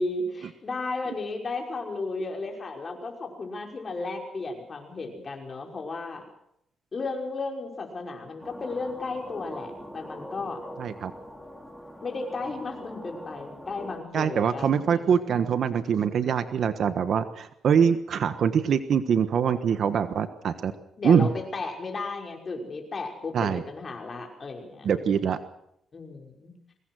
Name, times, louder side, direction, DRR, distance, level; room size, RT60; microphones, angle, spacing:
voice 1, 0.0-6.2 6.9-10.6 12.0-15.4 21.0-25.1 25.9-26.5, left 3 dB, 35° left, 2 dB, 5.8 m, -34 dB
sound 1, 8.4-14.0, equal, 5° left, 3.3 m, -42 dB
voice 2, 10.8-11.1 14.1-20.7 21.0-21.3 23.3-23.6 24.8-25.4, right 7 dB, 60° right, 11 dB, 1.3 m, -24 dB
23.0 x 19.0 x 6.4 m, 0.75 s
cardioid pair, 105°, 0 cm